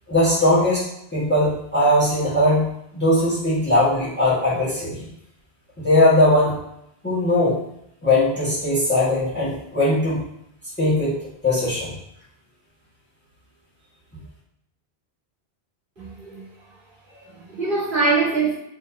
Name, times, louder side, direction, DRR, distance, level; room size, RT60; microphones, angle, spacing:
voice 1, 0.1-0.8 1.1-5.1 5.8-6.6 7.0-7.6 8.0-10.2 10.8-11.2 11.4-11.9, left 1 dB, 10° left, -10 dB, 1.6 m, -19 dB
voice 2, 16.0-16.5 17.2-18.5, right 3 dB, 55° right, -10 dB, 2.1 m, -23 dB
4.2 x 3.8 x 2.8 m, 0.76 s
omnidirectional pair, 1.1 m